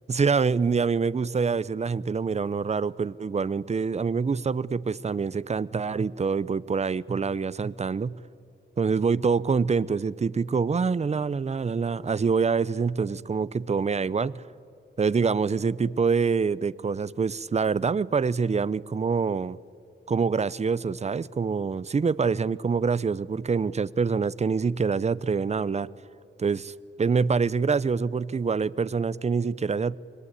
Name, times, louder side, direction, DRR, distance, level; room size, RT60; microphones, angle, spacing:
voice 1, 0.1-8.1 8.8-14.4 15.0-19.6 20.1-25.9 26.4-30.0, right 5 dB, 35° right, 19 dB, 0.6 m, -25 dB
25.5 x 22.5 x 9.8 m, 2.5 s
wide cardioid pair, 105°, 20 cm